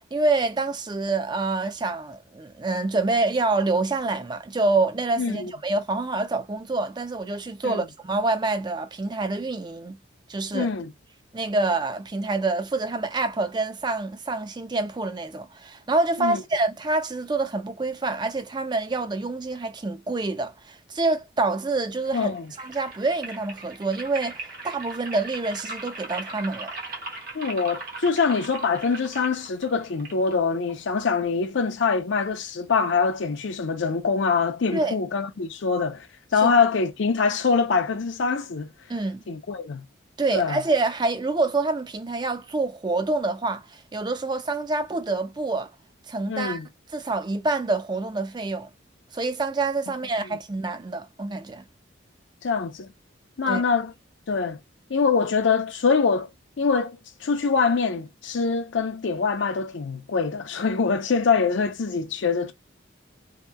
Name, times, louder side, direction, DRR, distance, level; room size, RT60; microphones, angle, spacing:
voice 1, 0.1-10.0 10.3-10.7 11.3-26.7 34.7-35.0 36.4-36.5 38.9-39.2 40.2-45.7 46.1-46.6 46.9-48.7 49.1-51.6 53.5-53.6, right 3 dB, 20° right, 0.4 m, -26 dB
voice 2, 5.2-5.5 7.6-7.8 10.5-10.9 16.2-16.4 22.1-22.5 27.3-36.1 36.3-38.7 39.3-39.8 40.3-40.6 46.3-46.7 52.4-52.9 53.4-53.9 54.3-54.6 54.9-56.3 56.6-62.5, left 5 dB, 75° left, 0.5 m, -24 dB
sound 1, 22.0-31.0, right 3 dB, 50° right, 0.9 m, -39 dB
2.8 x 2.2 x 2.2 m
head